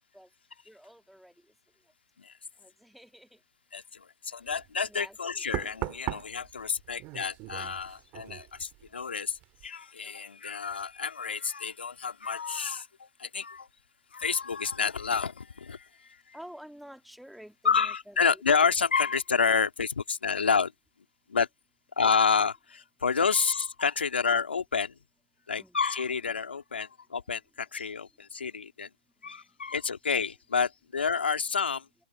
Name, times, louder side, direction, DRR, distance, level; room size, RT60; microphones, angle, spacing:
voice 1, 0.7-1.3 2.6-3.4 4.9-5.4 16.3-18.4 25.6-25.8, equal, ahead, 2.9 m, -49 dB
voice 2, 3.7-13.7 14.1-16.2 17.6-20.7 21.3-21.5 22.0-24.9 25.5-28.9 29.2-31.9, left 5 dB, 90° left, 3.0 m, -29 dB
Knock, 4.5-4.7 5.5-9.0 9.3-9.7, right 22 dB, 30° right, 2.5 m, -39 dB
hypercardioid pair, 145°, 6 cm